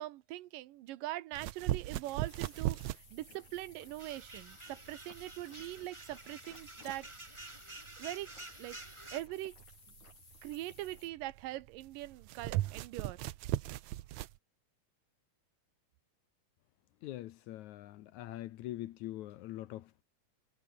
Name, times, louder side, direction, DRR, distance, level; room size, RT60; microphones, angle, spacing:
voice 1, 0.0-2.8 3.1-7.1 8.0-8.3 8.6-8.8 9.1-9.6 10.4-13.2, right 16 dB, 85° right, 2.6 m, -42 dB
sound 1, 1.3-14.4, right 15 dB, 70° right, 1.9 m, -40 dB
sound 2, 2.2-11.1, left 4 dB, 60° left, 9.1 m, -58 dB
sound 3, 4.0-9.2, right 2 dB, 15° right, 1.3 m, -50 dB
voice 2, 17.0-20.0, left 14 dB, 75° left, 2.0 m, -43 dB
omnidirectional pair, 3.9 m